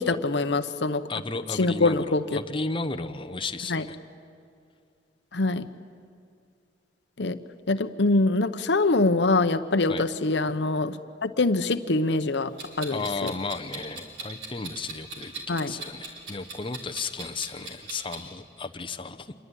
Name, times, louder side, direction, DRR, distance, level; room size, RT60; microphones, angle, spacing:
voice 1, 0.0-1.0 1.6-2.2 3.7-3.8 5.3-5.6 7.2-7.4 7.7-11.0 11.2-13.3 15.5-15.7, left 2 dB, 70° left, 10 dB, 0.9 m, -24 dB
voice 2, 1.1-4.0 9.9-10.0 12.9-19.3, left 3 dB, 30° left, 6 dB, 1.0 m, -34 dB
Clock, 12.6-18.2, right 3 dB, 90° right, 4.7 m, -40 dB
27.0 x 22.0 x 10.0 m, 2.3 s
head